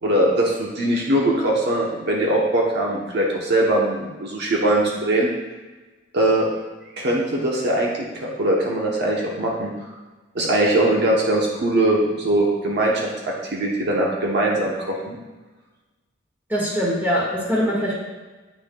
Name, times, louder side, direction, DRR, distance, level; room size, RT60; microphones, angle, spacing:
voice 1, 0.0-5.3 6.1-6.5 7.0-9.7 10.3-15.1, right 1 dB, 60° right, -2 dB, 0.9 m, -21 dB
voice 2, 16.5-17.9, equal, 10° right, -5 dB, 1.7 m, -22 dB
8.4 x 6.1 x 2.3 m, 1.2 s
head